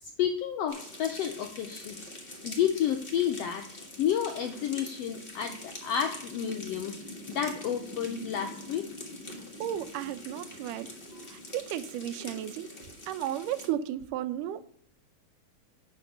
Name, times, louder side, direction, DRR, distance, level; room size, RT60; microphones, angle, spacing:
voice 1, 0.0-2.1 2.4-3.6 4.0-6.9 7.3-8.9, left 9 dB, 85° left, 5 dB, 1.4 m, -30 dB
sound 1, 0.7-13.7, left 1 dB, 35° left, 0.9 m, -44 dB
voice 2, 9.6-10.9 11.3-12.7 13.1-14.6, right 11 dB, 85° right, 12 dB, 2.2 m, -34 dB
7.3 x 5.2 x 6.8 m, 0.67 s
omnidirectional pair, 3.6 m